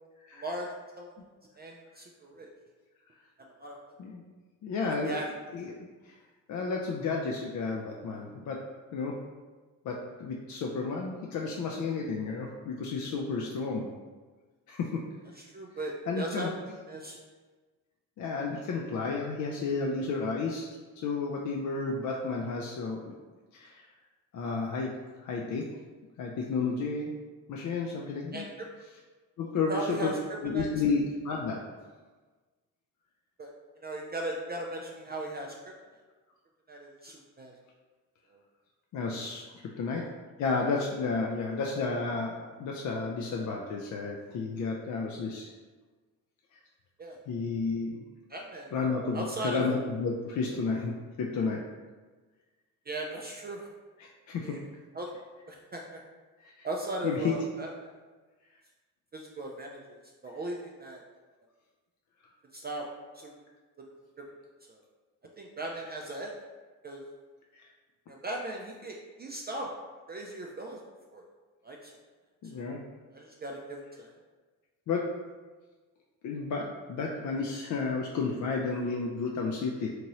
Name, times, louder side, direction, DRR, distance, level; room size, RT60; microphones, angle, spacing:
voice 1, 0.3-0.7 1.0-1.1 1.6-2.5 3.6-3.8 4.8-5.3 15.4-17.2 28.3-28.7 29.7-30.1 30.4-30.9 33.4-33.5 33.8-35.6 36.7-37.5 38.3-38.4 39.9-40.0 47.0-47.2 48.3-48.7 49.1-49.7 52.9-53.7 54.4-54.6 54.9-55.1 55.5-56.0 56.6-57.9 59.1-59.8 60.2-61.0 62.5-62.9 63.1-63.4 63.8-63.9 64.7-64.8 65.4-66.3 66.8-67.0 68.1-69.7 70.1-70.8 71.1-71.2 71.6-71.9 72.5-72.7 73.1-74.2, right 1 dB, 25° right, -1 dB, 0.3 m, -38 dB
voice 2, 4.6-5.2 5.5-5.7 6.0-6.1 6.5-8.6 8.9-9.2 9.8-13.9 14.7-15.0 16.1-16.5 18.2-23.1 23.5-23.9 24.3-24.9 25.2-25.7 26.2-27.2 27.5-28.4 29.4-30.1 30.4-31.6 38.9-40.0 40.4-45.5 47.3-48.0 48.7-51.6 54.0-54.6 56.4-56.7 57.0-57.3 67.5-67.7 72.4-72.8 74.9-75.1 76.2-79.9, left 4 dB, 45° left, 0 dB, 0.4 m, -32 dB
2.9 x 2.6 x 2.9 m, 1.3 s
hypercardioid pair, 45°, 43 cm